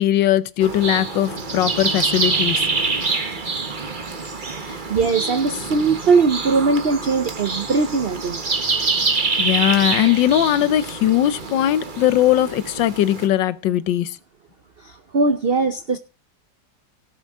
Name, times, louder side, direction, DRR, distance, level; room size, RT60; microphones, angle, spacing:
voice 1, 0.0-2.6 9.4-14.2, left 12 dB, 80° left, 1.5 m, -19 dB
sound 1, 0.6-13.3, right 4 dB, 30° right, 1.2 m, -26 dB
voice 2, 4.6-8.4 14.8-16.0, right 4 dB, 60° right, 0.6 m, -20 dB
17.5 x 7.2 x 3.6 m
omnidirectional pair, 2.0 m